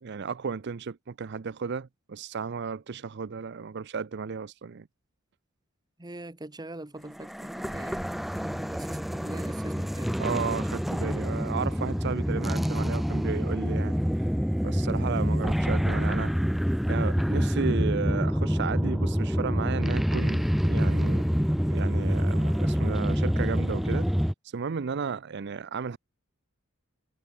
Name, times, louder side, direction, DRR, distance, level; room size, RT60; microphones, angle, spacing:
voice 1, 0.0-4.9 10.2-14.0 14.6-16.4 16.9-21.2 21.7-24.1 24.4-26.0, right 5 dB, 55° right, 0.5 m, -34 dB
voice 2, 6.0-8.0 8.3-10.2, right 1 dB, 20° right, 1.1 m, -42 dB
sound 1, 7.2-24.3, equal, ahead, 0.4 m, -27 dB
head